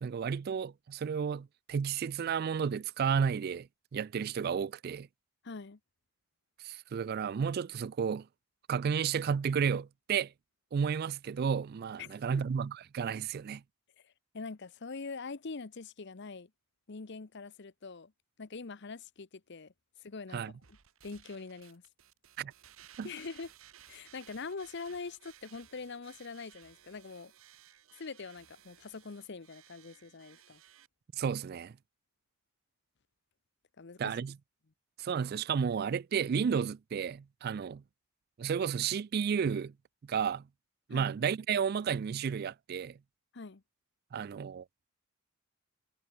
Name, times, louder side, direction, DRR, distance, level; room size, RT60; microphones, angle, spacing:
voice 1, 0.0-5.1 6.6-8.3 8.7-10.3 10.7-13.6 20.3-20.5 22.4-22.5 23.0-23.1 31.1-31.7 34.0-34.3 35.0-37.8 38.4-39.7 40.1-40.5 40.9-43.0 44.1-44.7, right 7 dB, 45° right, 0.3 m, -32 dB
voice 2, 5.4-5.8 12.0-12.4 14.0-16.5 16.9-18.1 18.4-19.7 20.0-20.5 21.0-21.8 23.0-23.5 23.9-27.3 28.0-30.6 33.8-34.1 40.9-41.1 43.3-43.6, left 4 dB, 55° left, 0.8 m, -44 dB
sound 1, 20.6-30.9, right 11 dB, 75° right, 1.1 m, -59 dB
head